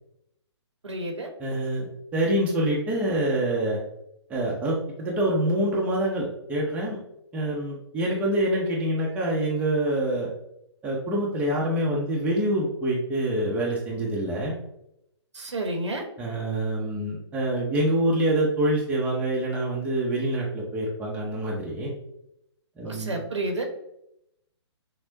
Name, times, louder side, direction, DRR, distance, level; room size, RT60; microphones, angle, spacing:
voice 1, 0.8-1.3 15.3-16.0 22.8-23.6, right 2 dB, 80° right, 3 dB, 1.0 m, -30 dB
voice 2, 1.4-3.8 4.3-7.0 7.3-10.3 10.8-14.6 16.2-21.9 22.8-23.2, right 1 dB, 10° right, -4 dB, 0.7 m, -26 dB
5.9 x 2.1 x 2.7 m, 0.80 s
figure-of-eight pair, 135°, 15 cm